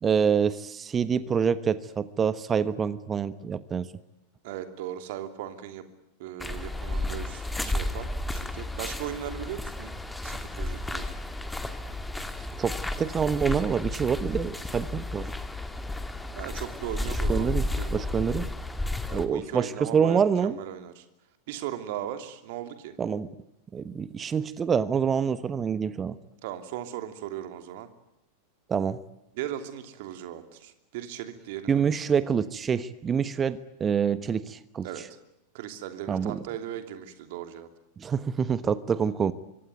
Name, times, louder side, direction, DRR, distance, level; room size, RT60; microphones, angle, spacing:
voice 1, 0.0-3.9 12.4-15.3 17.3-18.5 19.1-20.6 23.0-23.3 23.7-26.2 28.7-29.0 31.7-35.1 36.1-36.4 38.0-39.3, right 7 dB, 20° right, 15 dB, 1.1 m, -26 dB
voice 2, 4.4-5.8 6.2-9.9 10.2-11.1 16.3-18.1 19.1-21.0 21.5-22.9 26.4-27.9 29.4-31.8 34.8-35.0 35.5-37.7, right 11 dB, 50° right, 8 dB, 2.9 m, -37 dB
sound 1, 6.4-19.3, left 2 dB, 5° left, 2.1 m, -32 dB
25.0 x 25.0 x 9.4 m, 0.87 s
figure-of-eight pair, 90°, 0 cm